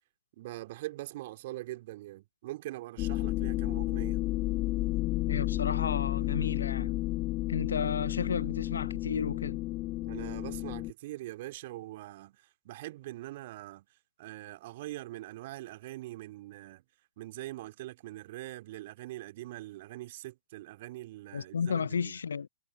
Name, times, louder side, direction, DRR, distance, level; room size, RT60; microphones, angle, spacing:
voice 1, 0.4-4.2 10.0-13.9 14.2-16.8 17.2-22.1, right 17 dB, 50° right, 2.5 m, -43 dB
sound 1, 3.0-10.9, left 18 dB, 35° left, 0.3 m, -32 dB
voice 2, 5.2-7.0 7.5-9.6 21.3-22.5, left 6 dB, 70° left, 0.8 m, -33 dB
figure-of-eight pair, 110°, 0 cm